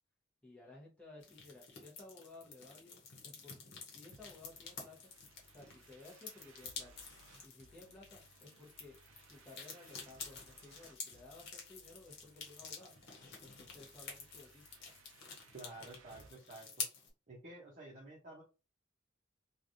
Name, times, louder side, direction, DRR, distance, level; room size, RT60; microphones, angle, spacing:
voice 1, 0.4-5.1 5.5-7.0 7.4-12.9 13.4-14.6, left 2 dB, 5° left, -4 dB, 1.0 m, -57 dB
sound 1, 1.2-17.1, left 5 dB, 60° left, 1.0 m, -49 dB
sound 2, 4.1-16.3, right 4 dB, 85° right, 0.5 m, -64 dB
voice 2, 15.5-16.9 17.3-18.4, right 2 dB, 40° right, -4 dB, 0.8 m, -51 dB
3.2 x 2.4 x 2.6 m, 0.32 s
head